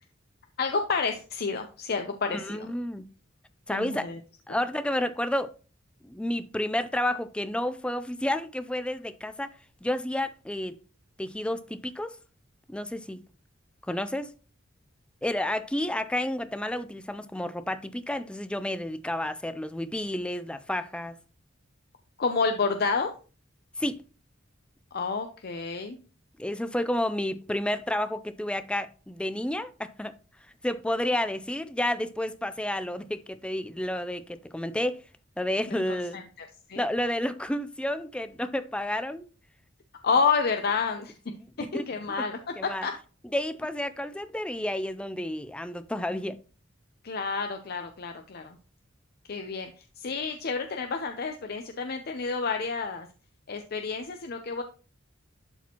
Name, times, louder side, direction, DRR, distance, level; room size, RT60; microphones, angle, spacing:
voice 1, 0.6-2.7 3.7-4.2 22.2-23.1 24.9-26.0 35.7-36.8 40.0-41.1 41.6-42.9 47.0-48.6 49.3-53.1 53.5-54.6, left 5 dB, 50° left, 0.6 m, -29 dB
voice 2, 2.3-3.0 3.7-4.1 4.5-5.6 6.0-9.5 9.8-10.8 11.2-12.2 12.7-13.2 13.9-14.3 15.2-21.2 23.8-24.0 26.4-30.1 30.6-35.0 35.4-36.2 36.8-39.3 41.3-41.9 42.6-42.9 43.3-46.4, left 1 dB, 5° left, 0.4 m, -30 dB
11.5 x 4.2 x 2.9 m
head